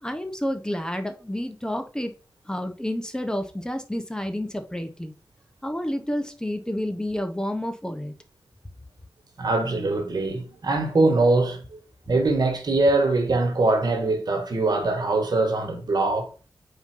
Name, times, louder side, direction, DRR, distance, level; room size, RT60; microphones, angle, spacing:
voice 1, 0.0-2.1 2.4-5.1 5.6-8.1, left 1 dB, 10° left, 1.1 m, -30 dB
voice 2, 9.4-11.8 12.1-16.3, right 2 dB, 65° right, 1.4 m, -22 dB
4.4 x 3.9 x 5.6 m
cardioid pair, 45°, 8 cm